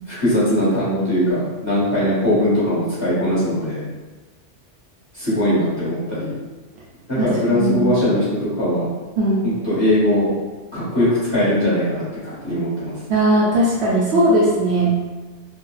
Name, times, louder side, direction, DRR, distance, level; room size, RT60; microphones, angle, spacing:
voice 1, 0.1-3.8 5.1-6.3 7.1-8.9 9.6-10.3 10.7-12.9, left 1 dB, 25° left, -12 dB, 1.2 m, -20 dB
voice 2, 7.2-7.9 9.2-9.5 13.1-15.0, right 1 dB, 65° right, -6 dB, 0.8 m, -18 dB
2.5 x 2.2 x 2.3 m, 1.2 s
omnidirectional pair, 1.2 m